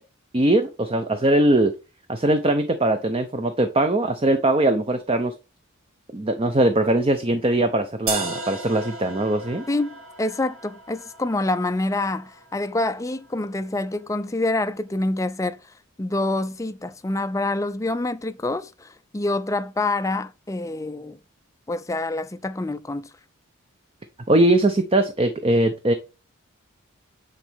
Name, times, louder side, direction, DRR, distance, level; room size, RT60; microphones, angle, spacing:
voice 1, 0.3-1.7 2.1-5.3 6.1-9.6 24.3-25.9, right 1 dB, 25° right, 0.6 m, -21 dB
sound 1, 8.1-14.0, right 3 dB, 75° right, 2.5 m, -36 dB
voice 2, 9.7-15.6 16.0-21.2 21.7-23.1, left 2 dB, 15° left, 0.4 m, -26 dB
8.9 x 4.0 x 3.5 m
head